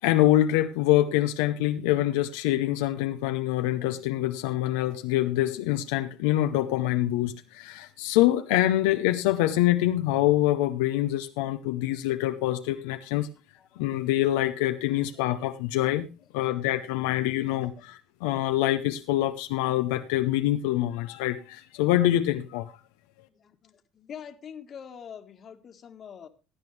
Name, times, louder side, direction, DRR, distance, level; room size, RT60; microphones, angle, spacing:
voice 1, 0.0-13.3 13.8-16.1 16.3-22.7, left 14 dB, 90° left, 8 dB, 0.7 m, -25 dB
voice 2, 13.6-13.9 16.4-16.5 17.8-17.9 23.3-26.3, left 8 dB, 45° left, 8 dB, 1.5 m, -45 dB
16.5 x 9.0 x 3.3 m, 0.31 s
supercardioid pair, 100°, 0 cm